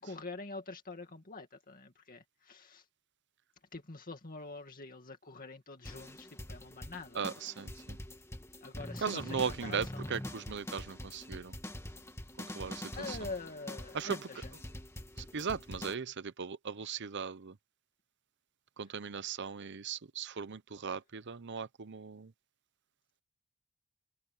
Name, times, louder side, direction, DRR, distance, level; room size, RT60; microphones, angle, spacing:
voice 1, 0.0-2.8 3.7-7.2 8.6-10.2 13.0-14.5, left 3 dB, 40° left, 2.2 m, -45 dB
sound 1, 5.9-15.9, left 1 dB, 15° left, 1.8 m, -44 dB
voice 2, 7.1-8.0 9.0-11.5 12.4-13.2 13.9-14.2 15.2-17.5 18.8-22.3, right 6 dB, 55° right, 0.8 m, -38 dB
head